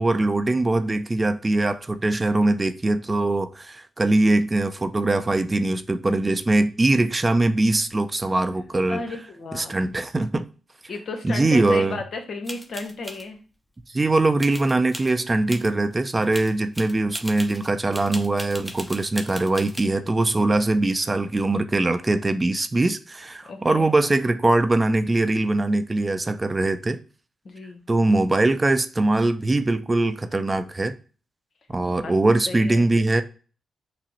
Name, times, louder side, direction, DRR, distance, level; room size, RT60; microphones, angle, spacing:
voice 1, 0.0-9.0 9.5-10.5 11.2-12.0 13.9-27.0 27.9-30.9 31.7-33.2, right 2 dB, 30° right, 0.5 m, -22 dB
voice 2, 8.9-9.7 10.9-13.4 23.4-23.9 27.4-27.8 32.0-32.1 32.5-32.8, left 3 dB, 65° left, 0.8 m, -33 dB
sound 1, 12.4-13.2 14.4-15.1 15.5-15.7 16.1-19.8, equal, 10° left, 0.8 m, -37 dB
5.6 x 2.0 x 3.0 m
supercardioid pair, 45°, 0 cm